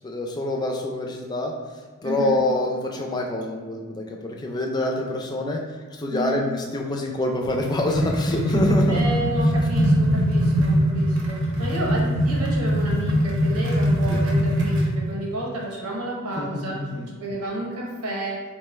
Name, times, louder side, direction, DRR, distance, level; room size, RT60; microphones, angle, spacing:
voice 1, 0.0-1.5 2.0-5.6 5.9-9.0 11.6-11.7 14.1-14.2 16.4-17.1, left 1 dB, 20° left, 1 dB, 0.3 m, -26 dB
voice 2, 2.0-2.4 6.1-6.5 8.9-16.8 17.2-18.4, right 1 dB, 85° right, -3 dB, 0.9 m, -31 dB
sound 1, 7.4-15.0, equal, 55° right, 0.7 m, -22 dB
3.8 x 2.2 x 3.1 m, 1.5 s
head